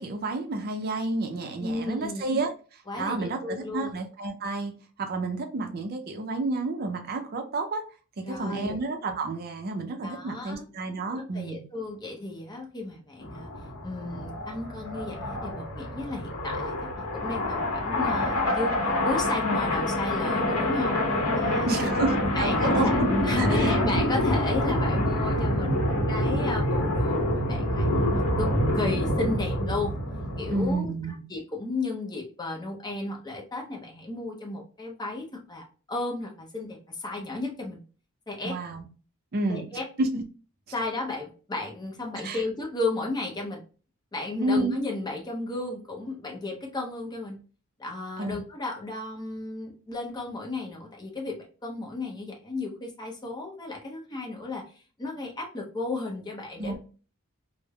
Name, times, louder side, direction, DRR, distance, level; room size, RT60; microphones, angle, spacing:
voice 1, 0.0-2.5 3.0-4.7 5.0-7.9 8.2-11.6 21.7-23.0 23.4-23.7 30.5-31.2 38.4-38.9 39.3-39.6 40.0-40.2 42.2-42.4 44.4-44.8 48.2-48.4 56.6-56.8, right 2 dB, 45° right, 0.4 m, -30 dB
voice 2, 1.6-2.2 2.9-4.0 8.2-8.8 10.0-10.7 11.1-13.5 13.8-18.8 19.0-21.0 21.3-22.0 22.3-30.0 30.4-30.9 31.3-37.8 38.3-38.6 39.5-39.9 40.7-43.6 44.1-47.4 47.8-54.6 55.0-56.8, left 2 dB, 20° left, 0.6 m, -34 dB
sound 1, 13.2-30.7, left 1 dB, 70° left, 0.8 m, -26 dB
3.1 x 2.0 x 2.2 m
head